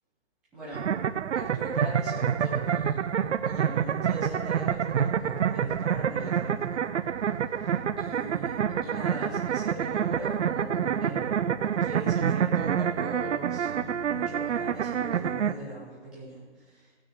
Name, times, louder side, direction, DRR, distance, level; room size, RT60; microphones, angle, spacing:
voice 1, 0.5-0.9 1.3-3.1 3.4-6.8 7.5-16.9, right 1 dB, ahead, -11 dB, 0.8 m, -40 dB
sound 1, 0.7-15.5, right 8 dB, 80° right, 0.6 m, -27 dB
14.5 x 6.1 x 4.6 m, 1.4 s
hypercardioid pair, 170°, 35 cm